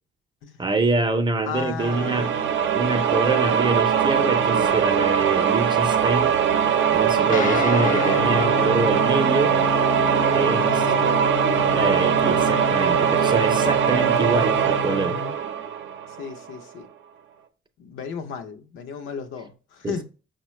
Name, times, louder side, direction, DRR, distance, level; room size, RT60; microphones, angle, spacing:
voice 1, 0.6-2.3 2.7-6.4 6.9-9.6 10.3-10.8 11.7-15.2 19.8-19.9, right 3 dB, 25° right, 0.5 m, -25 dB
voice 2, 1.4-2.5 10.4-11.2 13.5-13.6 16.1-16.9 17.8-20.0, left 6 dB, 80° left, 0.6 m, -35 dB
sound 1, 1.8-16.4, right 8 dB, 75° right, 0.5 m, -21 dB
Guitar, 7.3-15.4, left 9 dB, 40° left, 0.4 m, -30 dB
5.5 x 2.2 x 3.1 m
cardioid pair, 90°, 20 cm